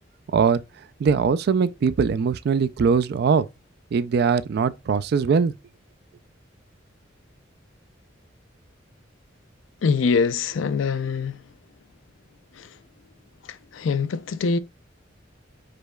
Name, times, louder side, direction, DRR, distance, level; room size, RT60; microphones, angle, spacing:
voice 1, 1.0-3.4 3.9-5.5, right 5 dB, 55° right, 0.3 m, -21 dB
voice 2, 9.8-11.4 12.6-12.7 13.5-14.6, left 5 dB, 80° left, 0.4 m, -24 dB
5.0 x 4.5 x 2.2 m
head